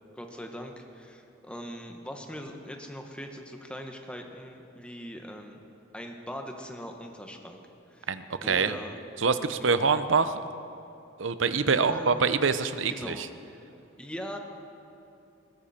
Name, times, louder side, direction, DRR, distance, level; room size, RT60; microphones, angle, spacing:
voice 1, 0.1-5.6 5.9-7.6 7.9-8.1 8.4-9.0 9.6-9.9 11.7-12.5 12.9-13.3 14.0-14.4, equal, 5° left, 3 dB, 1.4 m, -41 dB
voice 2, 8.1-8.7 9.2-10.4 11.2-13.1, right 5 dB, 75° right, 12 dB, 0.7 m, -25 dB
21.0 x 15.5 x 4.4 m, 2.8 s
head